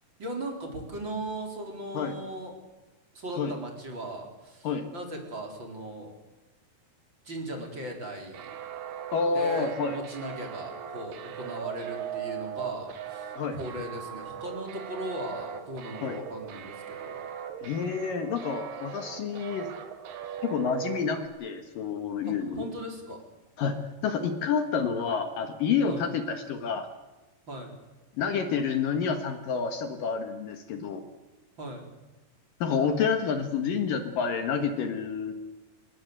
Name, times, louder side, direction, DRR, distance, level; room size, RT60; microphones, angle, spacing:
voice 1, 0.2-2.5 3.1-6.1 7.2-8.5 9.3-17.2 22.2-23.2 25.9-26.1 27.5-27.7 31.6-31.9, right 1 dB, 30° right, 2 dB, 4.7 m, -38 dB
sound 1, 8.3-21.3, right 9 dB, 80° right, 3.8 m, -39 dB
voice 2, 9.1-10.0 13.4-13.6 16.0-16.2 17.6-19.7 20.4-22.7 23.6-23.8 24.0-26.9 28.2-31.0 32.6-35.3, left 6 dB, 65° left, 7 dB, 2.9 m, -29 dB
26.0 x 20.0 x 8.0 m, 1.1 s
omnidirectional pair, 4.6 m